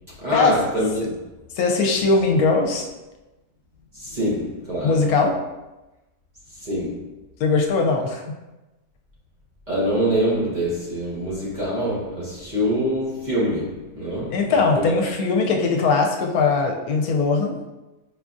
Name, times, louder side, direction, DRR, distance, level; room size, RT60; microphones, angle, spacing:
voice 1, 0.2-1.2 3.9-5.0 6.6-7.0 9.7-14.9, equal, 35° right, 0.9 m, -25 dB
voice 2, 1.6-2.9 4.8-5.4 7.4-8.2 14.3-17.6, left 4 dB, 80° left, 1.0 m, -20 dB
5.0 x 2.3 x 2.5 m
omnidirectional pair, 1.5 m